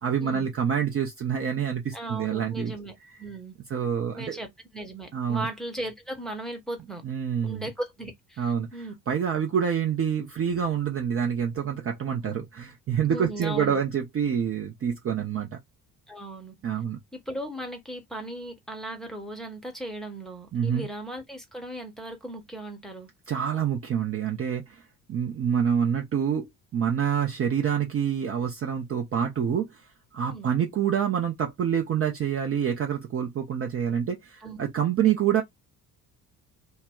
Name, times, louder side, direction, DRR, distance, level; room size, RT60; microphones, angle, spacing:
voice 1, 0.0-2.7 3.7-4.4 5.1-5.5 7.0-7.7 8.4-8.7 9.1-15.5 16.6-17.0 20.5-20.9 23.3-24.8 25.1-29.8 30.1-35.4, right 8 dB, 30° right, 0.6 m, -27 dB
voice 2, 1.9-3.5 4.1-7.0 7.4-8.9 12.2-12.3 13.1-13.8 16.1-16.5 17.1-23.1 30.3-30.5 34.4-34.6, right 1 dB, ahead, 0.9 m, -37 dB
2.1 x 2.1 x 3.5 m
figure-of-eight pair, 50°, 47 cm